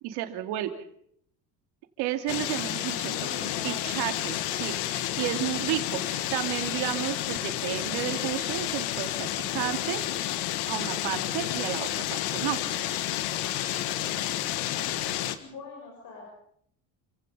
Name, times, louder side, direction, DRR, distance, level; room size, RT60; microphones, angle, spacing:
voice 1, 0.0-0.7 2.0-3.1 3.6-10.1 10.7-12.6, right 13 dB, 80° right, 7 dB, 2.7 m, -32 dB
sound 1, 2.3-15.4, left 13 dB, 90° left, 1.8 m, -30 dB
voice 2, 3.0-3.9 15.4-16.3, left 3 dB, 50° left, -1 dB, 6.6 m, -43 dB
29.0 x 16.5 x 5.5 m, 0.67 s
cardioid pair, 150°, 39 cm